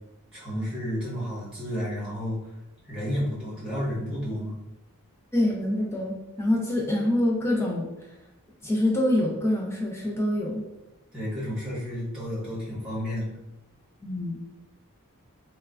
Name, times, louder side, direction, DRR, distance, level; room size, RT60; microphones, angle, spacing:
voice 1, 0.3-2.4 2.8-4.5 11.1-13.3, equal, 5° right, -8 dB, 1.0 m, -31 dB
voice 2, 5.3-7.9 8.6-10.6 14.0-14.4, left 1 dB, 10° left, -2 dB, 0.4 m, -25 dB
3.1 x 2.2 x 2.3 m, 0.92 s
head